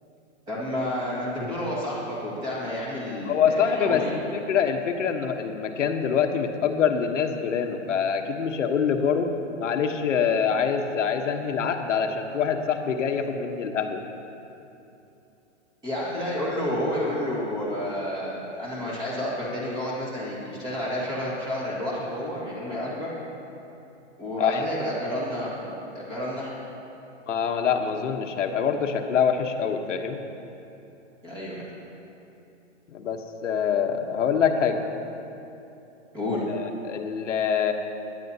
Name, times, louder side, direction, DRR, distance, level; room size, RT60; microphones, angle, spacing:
voice 1, 0.5-4.1 15.8-23.1 24.2-26.5 31.2-31.6 36.1-36.4, left 1 dB, 10° right, -6 dB, 1.7 m, -30 dB
voice 2, 3.3-9.3 9.6-14.0 24.4-24.6 27.3-30.2 32.9-34.8 36.5-37.7, left 7 dB, 85° left, 4 dB, 1.1 m, -25 dB
17.0 x 10.0 x 2.8 m, 2.9 s
hypercardioid pair, 175°, 36 cm